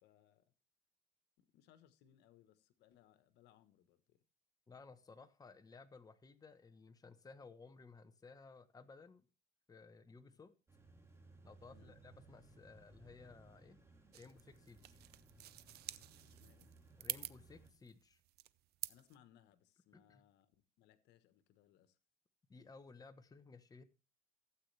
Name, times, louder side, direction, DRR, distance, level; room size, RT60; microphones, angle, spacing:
voice 1, 0.0-0.5 1.4-4.2 11.7-12.0 16.2-16.7 18.9-22.0, left 11 dB, 85° left, 1.3 m, -68 dB
voice 2, 4.7-9.3 9.7-10.5 11.4-13.8 14.1-15.0 17.0-18.2 19.9-20.2 22.5-23.8, left 4 dB, 20° left, 1.1 m, -58 dB
sound 1, 10.7-17.7, right 3 dB, 15° right, 3.0 m, -63 dB
sound 2, 14.1-19.2, right 15 dB, 70° right, 0.7 m, -48 dB
16.0 x 8.4 x 3.3 m
cardioid pair, 110°, 17 cm